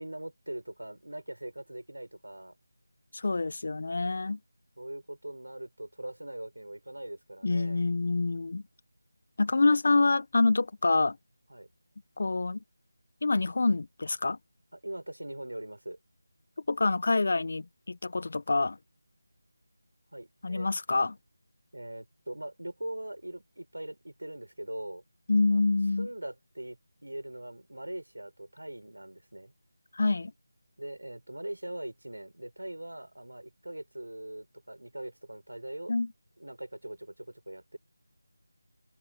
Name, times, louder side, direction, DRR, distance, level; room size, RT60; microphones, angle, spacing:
voice 1, 0.0-2.6 4.8-7.8 11.5-11.7 14.7-16.0 20.1-20.7 21.7-25.0 25.5-25.6 26.0-29.5 30.8-35.9 36.4-37.8, right 1 dB, 85° right, 7.2 m, -41 dB
voice 2, 3.1-4.4 7.4-8.6 9.4-11.2 12.2-12.6 13.2-14.4 16.7-18.8 20.4-21.2 25.3-26.1 29.9-30.3 35.9-36.1, left 3 dB, 55° left, 1.3 m, -26 dB
figure-of-eight pair, 165°, 0 cm